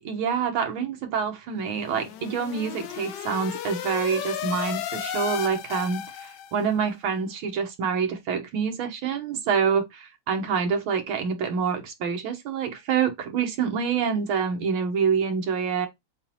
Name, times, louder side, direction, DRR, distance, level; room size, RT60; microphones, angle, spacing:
voice 1, 0.0-15.9, right 6 dB, 90° right, 1.9 m, -26 dB
sound 1, 1.7-6.7, left 10 dB, 75° left, 1.1 m, -34 dB
7.3 x 2.5 x 2.9 m
omnidirectional pair, 2.2 m